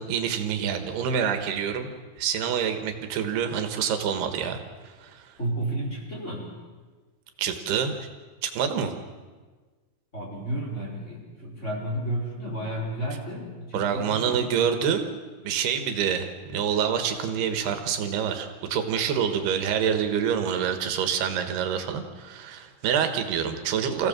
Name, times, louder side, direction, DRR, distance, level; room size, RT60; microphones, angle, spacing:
voice 1, 0.0-1.9 2.2-5.3 7.4-7.9 8.4-8.9 13.7-15.1 15.5-24.1, right 7 dB, 85° right, 7 dB, 3.5 m, -27 dB
voice 2, 5.4-6.6 10.1-14.4, right 1 dB, 15° left, -3 dB, 4.7 m, -32 dB
27.0 x 16.0 x 7.5 m, 1.4 s
omnidirectional pair, 4.5 m